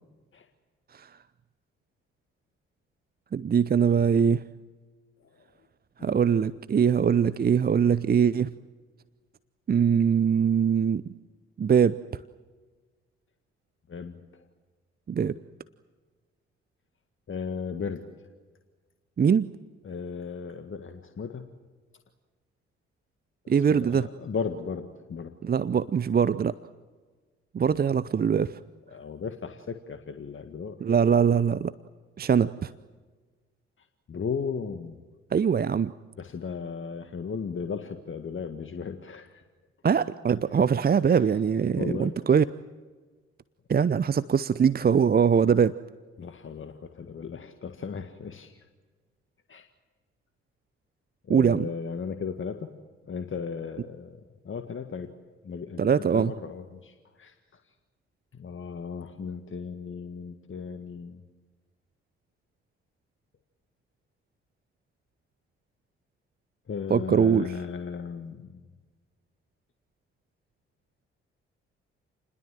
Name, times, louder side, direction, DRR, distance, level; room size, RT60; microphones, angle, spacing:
voice 1, 3.3-4.4 6.0-8.5 9.7-11.0 11.6-12.0 15.1-15.4 19.2-19.5 23.5-24.1 25.4-26.5 27.5-28.6 30.8-31.7 32.2-32.7 35.3-35.9 39.8-42.4 43.7-45.7 51.3-51.7 55.8-56.3 66.9-67.5, right 7 dB, 30° right, 16 dB, 0.7 m, -22 dB
voice 2, 13.9-14.4 17.3-18.1 19.8-21.5 23.5-25.3 28.9-30.9 33.8-35.0 36.2-39.4 40.5-40.7 41.8-42.1 46.2-48.7 49.5-49.7 51.2-52.7 53.1-55.1 55.4-57.4 58.3-61.2 66.7-68.7, left 5 dB, 40° left, 7 dB, 1.8 m, -36 dB
29.5 x 21.0 x 7.7 m, 1.4 s
figure-of-eight pair, 40°, 32 cm